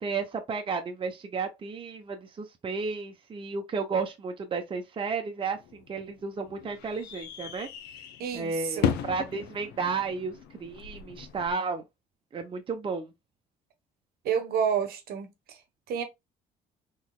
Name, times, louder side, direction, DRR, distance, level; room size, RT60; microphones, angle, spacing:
voice 1, 0.0-7.7 8.3-10.3 10.6-11.8 12.3-13.1, right 4 dB, 30° right, 0.8 m, -33 dB
sound 1, 5.5-11.5, left 8 dB, 80° left, 0.6 m, -36 dB
voice 2, 8.2-8.9 14.2-15.6 15.9-16.0, right 7 dB, 65° right, 1.0 m, -29 dB
3.9 x 3.1 x 2.3 m
cardioid pair, 110°, 17 cm